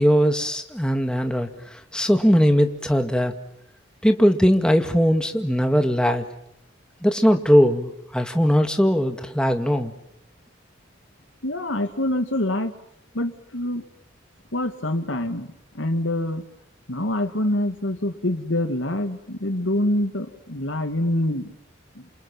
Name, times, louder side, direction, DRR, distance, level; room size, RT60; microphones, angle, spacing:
voice 1, 0.0-3.3 4.0-6.2 7.0-9.9, equal, 5° left, 6 dB, 2.0 m, -20 dB
voice 2, 11.4-12.7 13.1-13.8 14.5-16.4 16.9-21.5 22.0-22.1, left 1 dB, 75° left, 7 dB, 2.4 m, -25 dB
29.0 x 27.5 x 7.5 m, 0.74 s
head